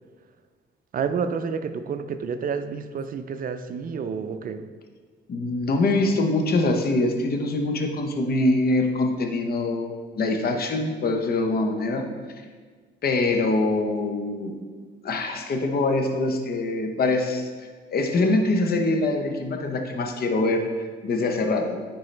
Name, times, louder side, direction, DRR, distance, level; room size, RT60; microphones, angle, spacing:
voice 1, 0.9-4.7, right 6 dB, 45° right, 9 dB, 0.5 m, -29 dB
voice 2, 5.3-12.1 13.0-14.5 15.0-17.5 17.9-20.7 21.0-21.8, left 2 dB, 50° left, 4 dB, 0.9 m, -24 dB
9.7 x 3.9 x 3.3 m, 1.5 s
cardioid pair, 90°, 20 cm